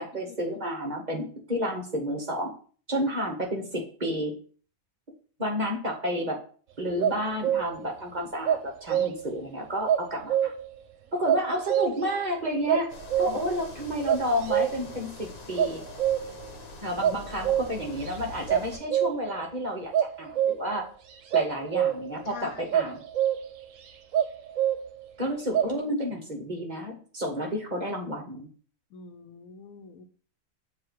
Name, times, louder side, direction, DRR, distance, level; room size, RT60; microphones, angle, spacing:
voice 1, 0.0-2.5 2.9-4.3 5.4-6.4 6.8-10.5 11.1-15.8 16.8-20.8 21.3-23.0 25.2-28.5, equal, 35° right, 1 dB, 1.0 m, -31 dB
sound 1, 7.0-7.9 8.4-9.4 9.9-10.8 11.3-12.2 12.7-13.6 14.1-15.0 15.6-16.5 17.0-18.1 18.5-19.4 19.9-20.8 21.3-22.2 22.7-23.6 24.1-25.1 25.5-25.7, right 10 dB, 70° right, 1.0 m, -26 dB
sound 2, 12.9-18.8, left 3 dB, 50° left, 1.2 m, -44 dB
voice 2, 22.2-22.8 28.9-30.1, left 7 dB, 80° left, 8 dB, 1.1 m, -45 dB
7.4 x 2.8 x 4.5 m, 0.43 s
omnidirectional pair, 1.4 m